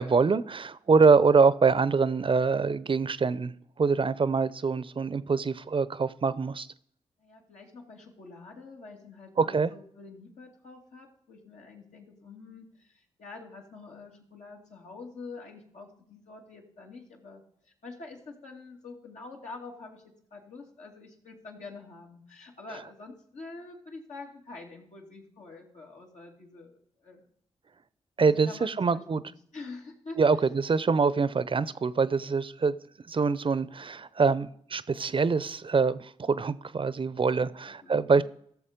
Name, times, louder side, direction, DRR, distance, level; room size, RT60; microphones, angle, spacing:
voice 1, 0.0-3.5 3.8-6.7 9.4-9.7 28.2-29.2 30.2-32.8 33.1-38.2, right 5 dB, 45° right, 17 dB, 0.7 m, -24 dB
voice 2, 7.2-27.3 28.2-30.2 37.0-38.2, left 3 dB, 70° left, 0 dB, 2.7 m, -46 dB
15.0 x 6.9 x 5.2 m, 0.66 s
supercardioid pair, 45°, 13 cm